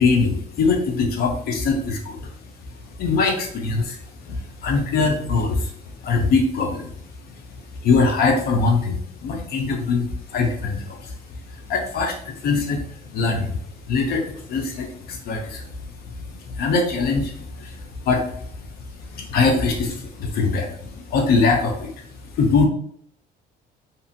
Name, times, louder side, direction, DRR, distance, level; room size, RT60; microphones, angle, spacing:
voice 1, 0.0-2.2 3.0-4.0 4.3-5.7 6.0-6.9 7.8-11.1 11.7-12.8 13.1-13.5 13.9-15.7 16.6-17.8 18.1-18.3 19.1-21.9 22.4-22.7, left 4 dB, 65° left, 2 dB, 0.7 m, -22 dB
2.7 x 2.5 x 2.7 m, 0.64 s
cardioid pair, 110°, 17 cm